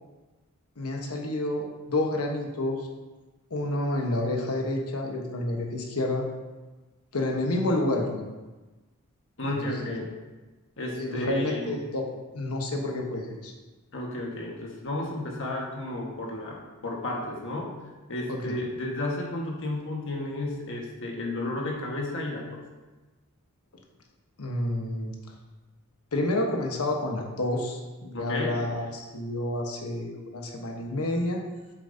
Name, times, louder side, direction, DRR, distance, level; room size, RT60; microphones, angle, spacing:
voice 1, 0.8-2.8 3.5-6.2 7.1-8.2 9.6-9.7 10.9-12.0 12.3-13.5 18.3-18.5 24.4-25.2 26.1-31.4, left 1 dB, 85° left, 1 dB, 1.1 m, -29 dB
voice 2, 9.4-10.1 10.8-11.8 13.9-17.7 18.1-22.6 28.1-28.6, left 1 dB, 60° left, -1 dB, 1.5 m, -32 dB
8.5 x 7.2 x 2.7 m, 1.2 s
head